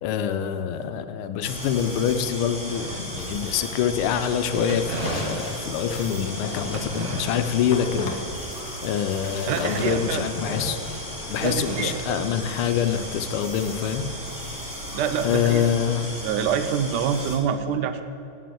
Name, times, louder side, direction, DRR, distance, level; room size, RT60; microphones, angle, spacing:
voice 1, 0.0-8.1 8.8-10.9 11.3-14.1 15.2-16.1, left 8 dB, 90° left, 9 dB, 1.5 m, -25 dB
sound 1, 1.4-17.4, equal, 15° right, 1.8 m, -36 dB
sound 2, 2.7-3.5 4.7-7.8 8.2-8.5 9.5-11.1 11.5-12.8, right 3 dB, 55° right, 0.6 m, -37 dB
sound 3, 4.5-7.0 7.7-8.8 9.0-11.6, left 3 dB, 55° left, 1.1 m, -36 dB
voice 2, 9.5-10.2 11.4-12.3 14.9-15.7 16.1-18.0, right 8 dB, 75° right, 10 dB, 1.0 m, -26 dB
9.2 x 6.6 x 7.5 m, 2.6 s
omnidirectional pair, 2.3 m